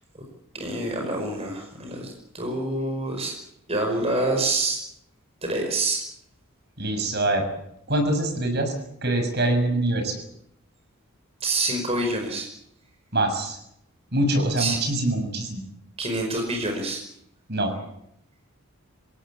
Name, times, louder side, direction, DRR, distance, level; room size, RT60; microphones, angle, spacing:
voice 1, 0.5-3.4 3.7-4.8 5.4-6.0 11.4-12.5 14.6-14.8 16.0-17.0, right 2 dB, 25° right, 2 dB, 5.2 m, -26 dB
voice 2, 6.8-7.5 7.9-8.7 9.0-10.2 13.1-13.6 14.1-15.6 17.5-17.7, right 1 dB, 50° right, 6 dB, 6.5 m, -24 dB
26.5 x 18.0 x 8.6 m, 0.76 s
head